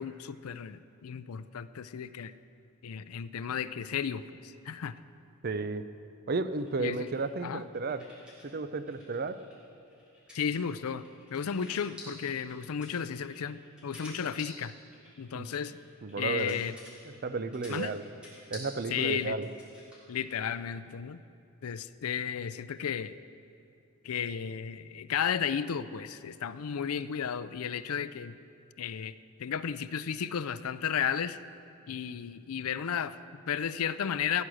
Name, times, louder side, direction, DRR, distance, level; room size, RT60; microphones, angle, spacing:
voice 1, 0.0-2.3 2.8-5.0 6.8-7.1 7.4-7.6 10.3-11.0 11.3-14.7 15.2-15.7 16.2-16.8 17.7-18.0 18.9-19.4 20.1-21.2 21.6-23.2 24.0-28.4 28.8-31.4 31.9-34.4, left 7 dB, 75° left, 15 dB, 0.5 m, -34 dB
voice 2, 5.4-5.8 6.3-8.0 8.4-9.4 15.3-15.5 16.0-16.6 17.2-18.0 18.5-19.5, right 3 dB, 45° right, 12 dB, 0.5 m, -33 dB
sound 1, 6.5-8.5 8.8-20.6, left 1 dB, 5° right, 3.4 m, -51 dB
16.0 x 10.0 x 6.3 m, 2.6 s
head